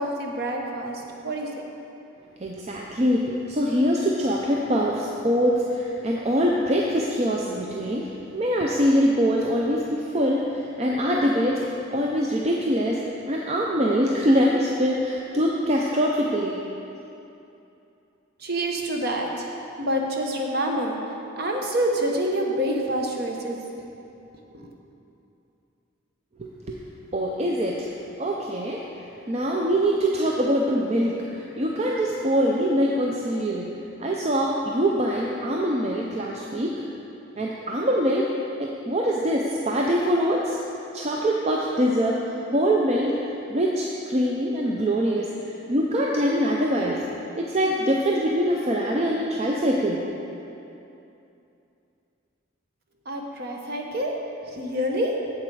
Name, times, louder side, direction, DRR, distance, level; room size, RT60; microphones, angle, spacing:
voice 1, 0.0-1.5 18.4-19.5 19.8-21.0 21.4-23.6 24.5-24.7 53.1-54.1 54.5-55.1, equal, 50° right, 1 dB, 0.9 m, -27 dB
voice 2, 2.4-11.6 11.9-16.6 26.4-26.8 27.1-27.9 28.2-28.8 29.3-33.7 34.0-36.8 37.4-38.3 38.6-40.6 40.9-43.2 43.5-45.3 45.7-47.0 47.4-50.0, equal, 30° right, -2 dB, 0.5 m, -23 dB
7.7 x 7.3 x 4.7 m, 2.8 s
head